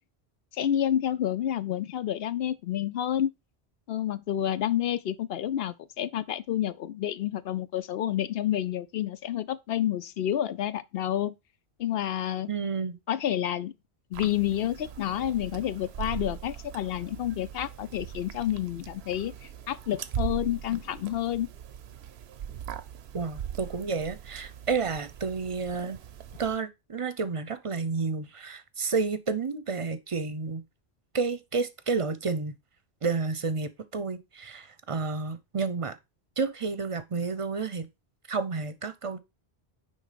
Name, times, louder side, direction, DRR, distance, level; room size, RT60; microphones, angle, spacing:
voice 1, 0.5-3.3 3.9-11.3 11.8-12.5 13.1-13.7 14.1-19.3 19.7-21.5, left 11 dB, 70° left, 0.8 m, -29 dB
voice 2, 12.5-13.0 23.1-26.0 26.4-30.6 31.1-32.6 33.0-36.0 36.4-37.9 38.3-39.2, right 4 dB, 35° right, 0.7 m, -30 dB
sound 1, 14.1-26.6, right 9 dB, 75° right, 0.9 m, -40 dB
9.7 x 3.5 x 5.1 m
omnidirectional pair, 1.1 m